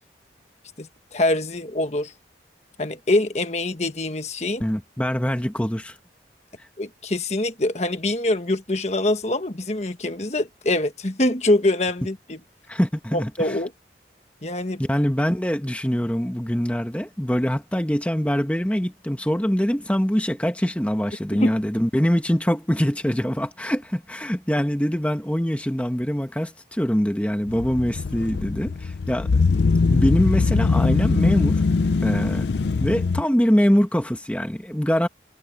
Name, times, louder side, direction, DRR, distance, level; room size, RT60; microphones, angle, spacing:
voice 1, 0.8-2.1 2.8-4.7 6.8-12.4 13.1-13.7 14.4-14.8 21.3-21.5, left 1 dB, 40° left, 1.4 m, -24 dB
voice 2, 4.6-6.0 12.7-13.6 14.8-29.4 29.9-31.6 32.0-32.5 32.8-35.1, equal, 5° left, 1.2 m, -23 dB
sound 1, 27.5-33.2, left 4 dB, 75° left, 0.5 m, -21 dB
head